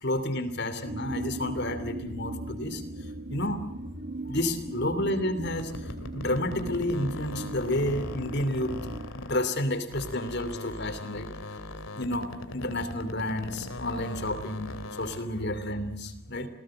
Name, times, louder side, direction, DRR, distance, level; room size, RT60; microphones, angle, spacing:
voice 1, 0.0-2.8 3.3-3.6 4.3-8.7 9.1-11.3 12.0-16.5, left 1 dB, 50° left, 11 dB, 2.9 m, -30 dB
sound 1, 0.8-9.1, right 2 dB, 55° right, 2.4 m, -38 dB
sound 2, 5.4-9.6 9.9-15.3, left 1 dB, 70° left, 2.7 m, -40 dB
28.0 x 18.0 x 7.7 m, 0.81 s
head